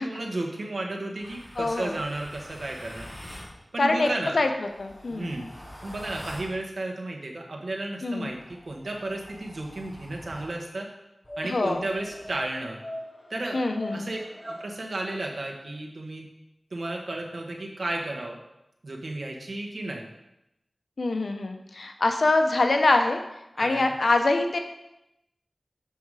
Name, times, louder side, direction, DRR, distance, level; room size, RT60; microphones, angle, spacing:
voice 1, 0.0-3.1 3.7-4.4 5.1-5.5 5.8-8.4 8.7-10.9 11.4-12.8 13.3-13.6 13.9-16.3 16.7-18.4 18.8-20.1 23.6-23.9, right 2 dB, 70° right, 0 dB, 1.5 m, -33 dB
sound 1, 1.2-3.6 4.5-6.6 8.2-10.6 11.2-14.7, left 1 dB, 25° left, 1.4 m, -43 dB
voice 2, 1.6-2.0 3.8-4.1 4.3-4.5 4.8-5.3 8.0-8.3 11.4-11.8 13.5-14.1 21.0-23.2 23.6-24.6, left 2 dB, 75° left, 5 dB, 0.8 m, -24 dB
7.2 x 5.7 x 4.9 m, 0.89 s
wide cardioid pair, 55°, 0 cm